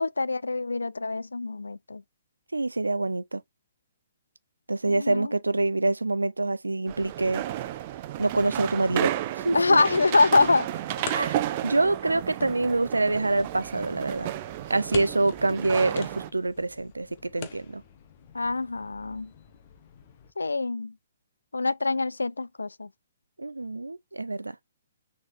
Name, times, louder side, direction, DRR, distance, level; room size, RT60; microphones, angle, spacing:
voice 1, 0.0-2.0 4.9-5.3 9.5-10.7 18.3-19.3 20.4-20.9 21.5-22.9, left 3 dB, 85° left, 0.3 m, -24 dB
voice 2, 2.5-3.4 4.7-7.4 8.2-9.8 11.1-14.3 14.7-17.8 23.4-24.6, right 2 dB, 90° right, 0.5 m, -26 dB
sound 1, 6.9-16.3, right 13 dB, 40° right, 0.9 m, -32 dB
sound 2, 9.4-20.3, left 7 dB, 45° left, 1.5 m, -45 dB
6.5 x 4.3 x 3.5 m
figure-of-eight pair, 125°, 0 cm